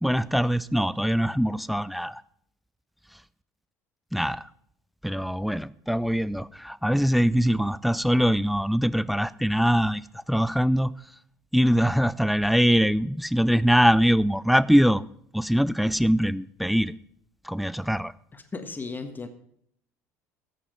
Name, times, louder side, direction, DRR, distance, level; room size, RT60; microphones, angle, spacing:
voice 1, 0.0-2.2 4.1-4.4 5.0-10.0 10.3-10.9 11.5-15.0 15.3-16.9 17.5-18.1, equal, ahead, 0.4 m, -23 dB
voice 2, 18.3-19.3, left 4 dB, 20° left, 1.5 m, -35 dB
13.5 x 8.4 x 5.1 m
hypercardioid pair, 65°, 8 cm